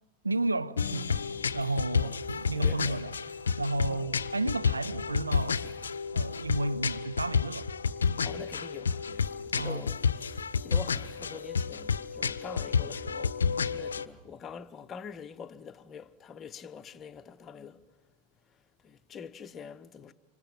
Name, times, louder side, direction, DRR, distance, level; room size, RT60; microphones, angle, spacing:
voice 1, 0.2-1.3 1.5-5.7 6.1-7.7 9.6-9.9, right 2 dB, 80° right, 0.8 m, -32 dB
sound 1, 0.8-14.0, left 6 dB, 70° left, 0.7 m, -30 dB
voice 2, 2.5-3.1 3.8-4.1 8.2-10.0 10.2-17.8 18.8-20.1, left 6 dB, 25° left, 0.9 m, -45 dB
26.0 x 26.0 x 7.6 m
figure-of-eight pair, 90°, 0 cm